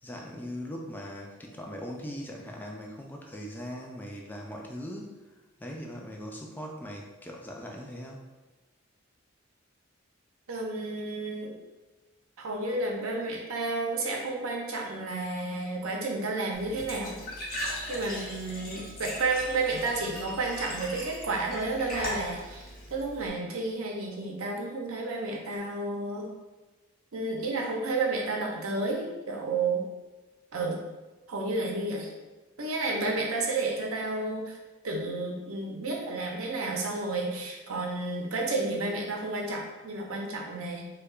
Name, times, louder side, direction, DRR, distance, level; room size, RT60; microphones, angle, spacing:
voice 1, 0.0-5.1 5.6-8.2, equal, 10° left, 0 dB, 0.3 m, -40 dB
voice 2, 10.5-11.5 12.4-17.2 17.9-26.3 27.1-29.8 30.5-30.8 31.3-32.1 32.6-34.6 34.8-40.9, right 3 dB, 90° right, 0 dB, 0.6 m, -31 dB
Glass / Trickle dribble / Fill (with liquid), 16.5-23.3, left 1 dB, 45° left, 0.9 m, -39 dB
4.5 x 2.3 x 2.4 m, 1.2 s
head